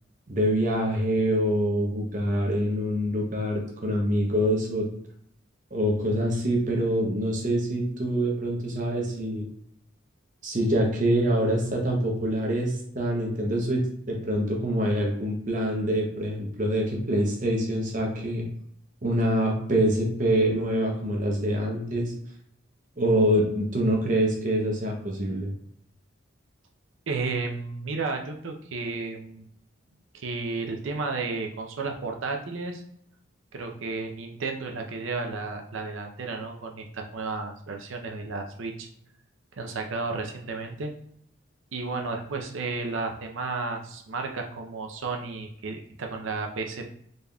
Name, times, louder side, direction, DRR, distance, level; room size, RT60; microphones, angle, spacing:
voice 1, 0.3-4.9 5.7-9.4 10.4-18.4 19.0-22.1 23.0-25.5, equal, 40° right, 0 dB, 0.7 m, -25 dB
voice 2, 27.1-29.5 30.1-32.8 33.5-38.9 39.6-40.9 41.7-46.9, right 3 dB, 80° right, 3 dB, 0.6 m, -32 dB
3.9 x 3.4 x 2.3 m, 0.67 s
head